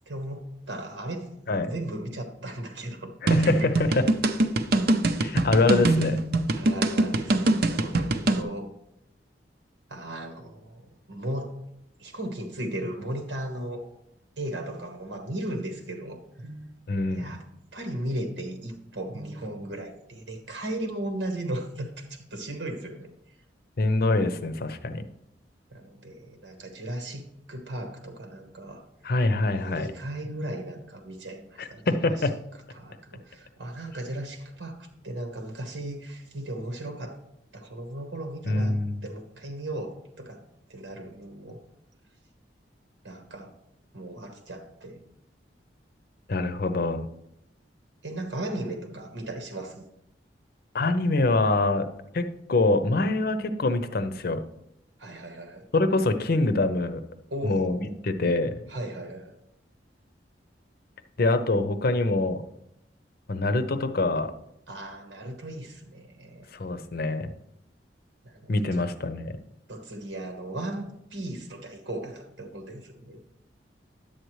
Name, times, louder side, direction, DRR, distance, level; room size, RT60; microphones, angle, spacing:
voice 1, 0.1-1.3 1.6-3.7 6.5-8.7 9.9-10.8 11.1-11.6 12.0-13.9 14.4-16.7 17.1-17.4 17.7-23.1 25.7-28.8 29.4-31.8 32.7-34.8 35.0-37.2 37.5-38.8 39.0-40.4 40.7-41.6 43.0-43.5 43.9-45.0 48.0-49.8 55.0-55.7 57.3-57.9 58.7-59.3 64.7-66.5 68.2-68.9 69.7-73.2, right 1 dB, 90° right, 4 dB, 1.2 m, -36 dB
voice 2, 3.2-4.0 5.2-6.2 16.9-17.3 23.8-25.0 29.0-29.9 31.6-32.4 38.5-39.0 46.3-47.1 50.7-51.9 52.1-54.4 55.7-57.0 57.4-58.5 61.2-62.4 63.3-64.3 66.5-67.3 68.5-69.4, left 2 dB, 55° left, 10 dB, 0.7 m, -25 dB
sound 1, 3.3-8.4, right 2 dB, 60° right, 0.6 m, -23 dB
10.5 x 8.0 x 3.1 m, 0.78 s
head